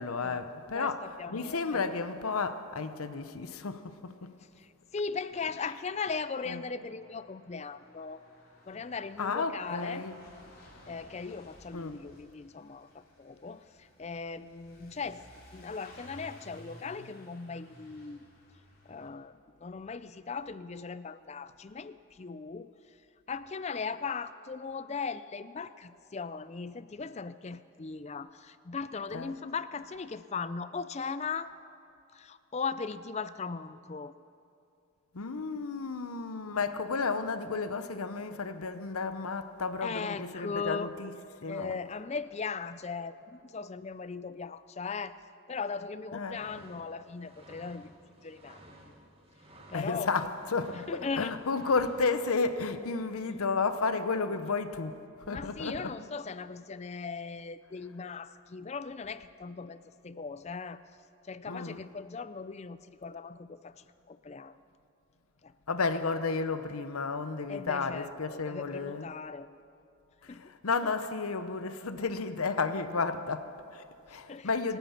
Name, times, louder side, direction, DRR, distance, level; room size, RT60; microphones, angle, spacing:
voice 1, 0.0-4.3 6.5-6.6 9.2-10.2 11.7-12.0 29.1-29.3 35.1-41.1 41.4-41.8 46.1-46.4 49.7-50.8 51.2-55.0 55.3-55.9 61.5-61.8 65.7-69.1 70.2-74.8, left 4 dB, 85° left, 0.8 m, -32 dB
voice 2, 0.7-1.9 4.6-8.2 8.7-10.1 10.9-15.3 15.5-18.2 18.9-23.0 23.3-31.5 32.1-34.1 39.8-40.9 41.5-45.2 45.5-48.6 49.7-50.3 50.7-51.4 53.3-53.4 55.3-60.8 61.3-64.6 65.4-65.5 67.5-69.5 70.3-70.5 70.8-70.9 74.1-74.8, left 5 dB, 30° left, 0.4 m, -38 dB
Truck / Accelerating revving vroom, 5.8-19.1, left 1 dB, 45° left, 2.9 m, -56 dB
sound 1, 46.3-52.6, right 1 dB, 25° right, 1.7 m, -55 dB
25.5 x 9.2 x 5.8 m
head